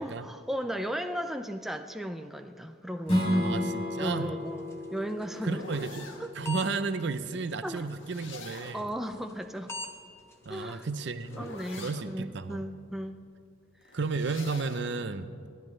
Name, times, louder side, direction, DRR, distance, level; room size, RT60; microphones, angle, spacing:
voice 1, 0.0-3.5 4.0-5.6 6.2-6.3 7.6-7.9 8.7-9.7 10.5-10.9 11.4-13.2 13.8-14.0, equal, ahead, 5 dB, 0.5 m, -36 dB
Strum, 3.0-8.2, equal, 30° left, 4.3 m, -33 dB
voice 2, 3.4-4.3 5.4-6.1 6.4-8.8 10.5-11.5 11.8-12.6 13.9-15.3, right 4 dB, 60° right, 11 dB, 0.6 m, -33 dB
sound 1, 4.5-6.3 7.7-8.9 10.3-12.1 13.8-14.9, left 2 dB, 70° left, 1.6 m, -46 dB
sound 2, 4.5-11.7, left 1 dB, 15° left, 0.9 m, -47 dB
29.5 x 10.5 x 3.2 m, 2.2 s
head